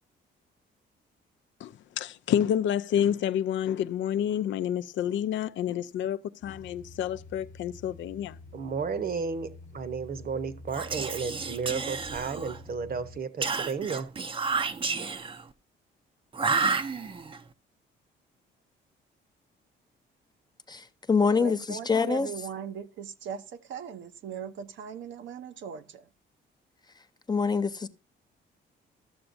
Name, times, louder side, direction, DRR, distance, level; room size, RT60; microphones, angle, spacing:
voice 1, 1.6-8.4, left 10 dB, 70° left, 0.4 m, -29 dB
sound 1, 6.4-13.2, left 2 dB, 40° left, 1.0 m, -48 dB
voice 2, 8.5-14.1, right 5 dB, 50° right, 1.0 m, -33 dB
Whispering, 10.7-12.7 13.4-15.4 16.3-17.4, right 4 dB, 25° right, 0.5 m, -30 dB
voice 3, 20.7-22.3 27.3-27.9, left 5 dB, 20° left, 0.5 m, -25 dB
voice 4, 21.4-26.1, right 7 dB, 70° right, 0.7 m, -39 dB
13.0 x 6.9 x 2.6 m
cardioid pair, 90°, 20 cm